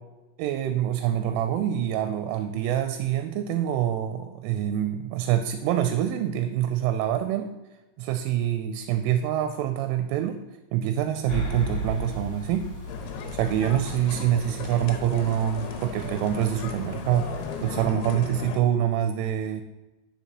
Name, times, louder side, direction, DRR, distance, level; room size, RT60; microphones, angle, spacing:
voice 1, 0.4-7.5 8.0-10.4 10.7-12.7 13.3-17.3 17.6-19.6, right 11 dB, 85° right, 8 dB, 3.0 m, -26 dB
sound 1, 11.3-17.8, equal, 35° left, 3.7 m, -37 dB
sound 2, 12.9-18.6, left 5 dB, 90° left, 3.4 m, -36 dB
9.9 x 6.9 x 3.0 m, 1.1 s
omnidirectional pair, 5.8 m